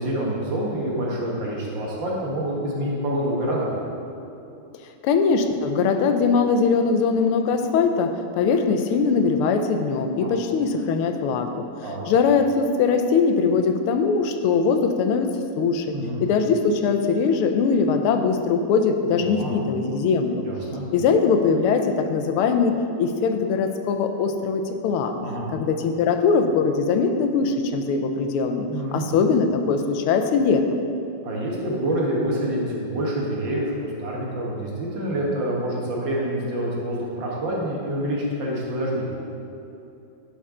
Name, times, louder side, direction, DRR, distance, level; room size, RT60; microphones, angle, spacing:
voice 1, 0.0-3.8 11.8-12.0 15.9-16.2 19.1-19.6 20.4-20.9 25.2-25.5 28.7-29.1 31.2-39.1, right 1 dB, 60° right, -3 dB, 2.0 m, -27 dB
voice 2, 5.0-11.6 12.1-20.4 20.9-25.1 25.5-30.8, left 5 dB, 85° left, 7 dB, 1.5 m, -21 dB
11.5 x 5.5 x 3.7 m, 2.8 s
omnidirectional pair, 2.4 m